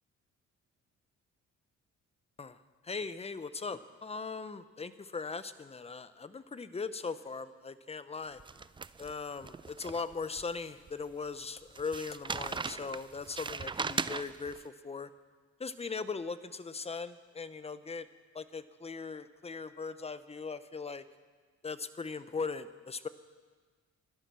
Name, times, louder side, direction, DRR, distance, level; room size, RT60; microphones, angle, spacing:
voice 1, 2.8-8.4 9.0-15.1 15.6-18.1 18.3-21.0 21.6-23.1, left 4 dB, 20° left, 13 dB, 0.8 m, -39 dB
sound 1, 8.4-10.4 10.9-11.0 11.8-14.6, right 4 dB, 15° right, 0.4 m, -38 dB
16.5 x 12.5 x 6.2 m, 1.5 s
cardioid pair, 90°, 30 cm